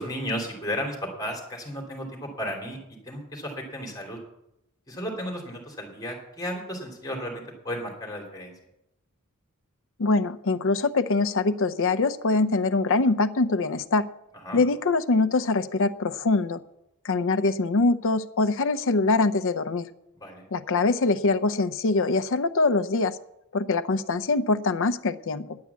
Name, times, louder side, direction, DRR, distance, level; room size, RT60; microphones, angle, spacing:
voice 1, 0.0-2.8 3.0-4.2 4.9-8.5 14.3-14.6 20.2-20.4, equal, 20° left, 1 dB, 2.9 m, -34 dB
voice 2, 10.0-14.0 14.5-16.6 17.0-19.9 20.5-23.2 23.5-25.6, left 3 dB, 65° left, 10 dB, 0.6 m, -23 dB
10.5 x 8.6 x 8.2 m, 0.85 s
head